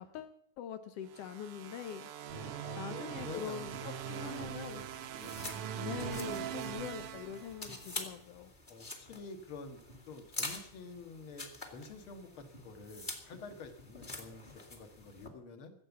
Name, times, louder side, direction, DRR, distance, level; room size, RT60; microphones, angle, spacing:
voice 1, 0.0-2.1 2.8-4.8 5.8-8.5, left 9 dB, 80° left, 9 dB, 1.4 m, -43 dB
sound 1, 1.1-8.0, right 9 dB, 70° right, 1.3 m, -42 dB
voice 2, 2.3-4.9 5.2-5.4 8.7-9.8 10.1-15.7, left 4 dB, 45° left, 7 dB, 2.2 m, -49 dB
sound 2, 4.0-15.3, left 2 dB, 20° left, 1.7 m, -47 dB
15.5 x 8.1 x 8.2 m, 0.68 s
omnidirectional pair, 3.7 m